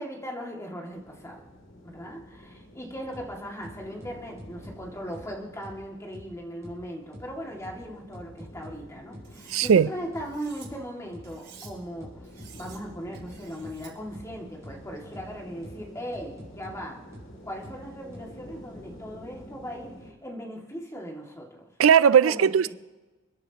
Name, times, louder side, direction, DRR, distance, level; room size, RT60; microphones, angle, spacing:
voice 1, 0.0-1.4 1.8-12.2 12.5-17.1 17.4-21.7 22.2-22.7, equal, 15° left, 2.3 m, -38 dB
sound 1, 0.9-20.1, equal, 70° left, 2.8 m, -49 dB
sound 2, 3.1-3.3 3.6-4.8 5.1-5.3 5.6-5.8 6.1-6.3 6.6-6.8 7.1-7.3 7.6-7.8 8.1-8.8 9.1-9.3 9.6-9.8 10.1-10.3 10.6-10.8 11.1-11.3 11.6-12.8 13.1-13.3 13.6-13.8 14.1-14.3 14.6-14.8 15.1-15.3 15.6-15.8 16.1-16.8 17.1-17.3 17.6-17.8 18.1-18.2, equal, 15° right, 6.2 m, -44 dB
Cutlery silverware, 9.2-9.7 10.2-10.7 11.2-11.7 12.2-12.8 13.1-13.9, right 8 dB, 55° right, 6.3 m, -50 dB
voice 2, 9.5-9.9 21.8-22.7, right 7 dB, 85° right, 0.4 m, -18 dB
30.0 x 10.5 x 3.0 m
head